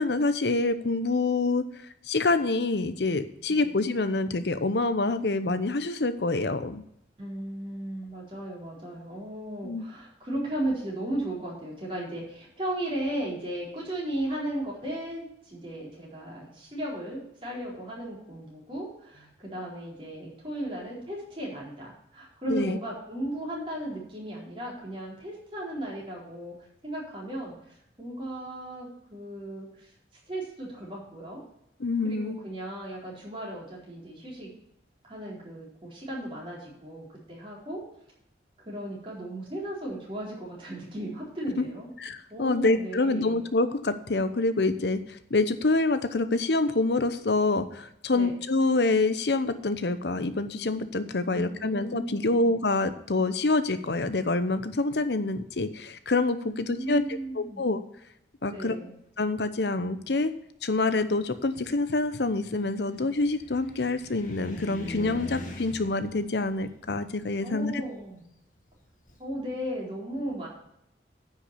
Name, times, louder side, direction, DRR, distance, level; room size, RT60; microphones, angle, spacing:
voice 1, 0.0-1.6 2.1-6.8 9.6-9.8 22.5-22.8 31.8-32.4 41.6-41.7 42.0-57.8 58.4-58.8 59.2-60.3 60.6-67.8, left 3 dB, 70° left, 11 dB, 0.8 m, -26 dB
voice 2, 7.2-26.5 26.8-29.9 30.3-31.4 32.0-34.5 35.0-37.8 38.7-41.9 42.3-43.4 48.1-48.3 51.3-52.6 56.4-57.6 58.5-58.9 67.4-68.2 69.2-70.5, right 1 dB, 30° right, -4 dB, 4.2 m, -36 dB
Car, 61.0-69.2, left 1 dB, 45° left, 1.8 m, -44 dB
9.9 x 5.9 x 6.8 m, 0.75 s
head